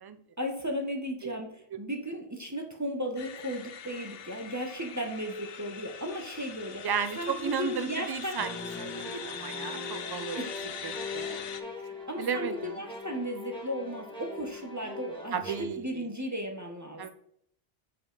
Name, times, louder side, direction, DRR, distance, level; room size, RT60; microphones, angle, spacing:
voice 1, 0.4-6.8 7.1-8.4 10.4-10.6 11.7-17.1, equal, 20° right, 3 dB, 0.9 m, -35 dB
sound 1, 3.2-11.6, left 8 dB, 65° left, 0.8 m, -42 dB
voice 2, 6.8-10.5 10.8-11.4 12.2-12.8 15.3-16.1 17.0-17.1, right 6 dB, 35° right, 10 dB, 0.4 m, -34 dB
sound 2, 8.4-15.6, left 3 dB, 5° left, 1.6 m, -41 dB
7.5 x 4.2 x 3.9 m, 0.71 s
omnidirectional pair, 1.1 m